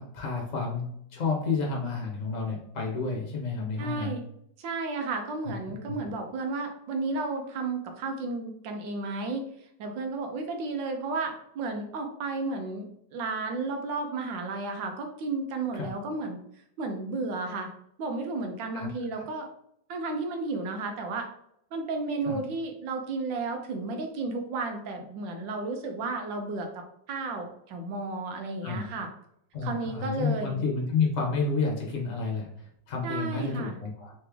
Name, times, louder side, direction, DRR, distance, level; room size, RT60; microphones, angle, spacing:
voice 1, 0.0-4.2 5.9-6.0 15.8-15.9 18.7-18.9 22.3-22.4 28.6-28.8 29.5-32.5 32.9-34.1, left 4 dB, 45° left, -1 dB, 1.4 m, -30 dB
voice 2, 3.8-4.2 4.6-9.5 9.8-12.9 13.1-16.4 16.8-17.7 18.0-19.5 19.9-21.3 21.7-26.8 27.1-29.1 29.6-30.6 33.0-33.7, right 3 dB, 75° right, 4 dB, 1.5 m, -33 dB
3.9 x 3.2 x 3.5 m, 0.73 s
omnidirectional pair, 2.0 m